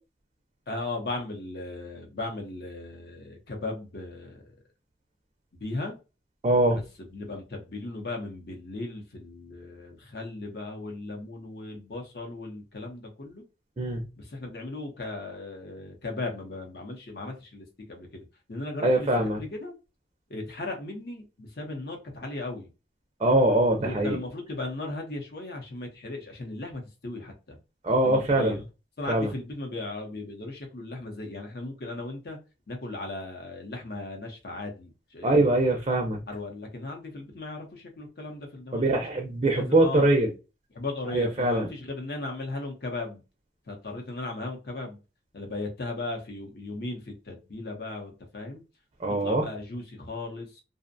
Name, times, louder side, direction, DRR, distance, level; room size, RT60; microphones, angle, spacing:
voice 1, 0.7-4.5 5.6-6.0 6.7-13.4 14.2-19.7 20.3-22.7 23.8-27.6 28.0-28.6 29.0-32.4 32.7-35.8 36.3-39.0 39.5-40.1 40.7-43.2 43.7-45.0 45.3-48.6 49.2-50.6, left 2 dB, 60° left, 2 dB, 0.7 m, -37 dB
voice 2, 6.4-6.8 13.8-14.0 18.8-19.4 23.2-24.2 27.8-28.6 29.1-29.3 35.2-36.2 38.7-40.3 41.1-41.7 49.0-49.4, right 1 dB, 30° right, 2 dB, 0.4 m, -23 dB
2.5 x 2.1 x 2.5 m, 0.29 s
head